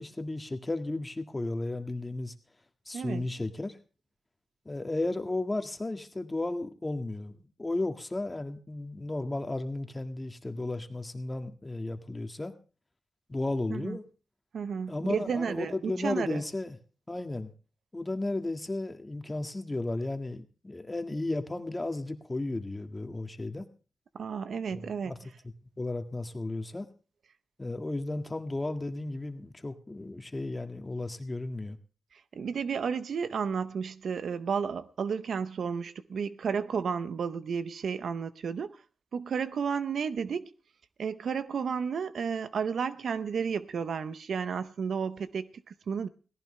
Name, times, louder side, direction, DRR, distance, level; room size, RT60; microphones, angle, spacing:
voice 1, 0.0-2.3 2.9-3.8 4.7-12.5 13.3-14.0 14.9-16.8 17.1-17.5 17.9-23.7 24.7-25.2 25.8-26.9 27.6-31.8, left 2 dB, 25° left, 1.7 m, -34 dB
voice 2, 2.9-3.2 13.7-14.0 14.5-16.4 24.1-25.1 32.3-38.7 39.1-40.5 41.0-46.1, right 6 dB, 75° right, 0.7 m, -32 dB
17.5 x 15.0 x 3.3 m
cardioid pair, 60°, 0 cm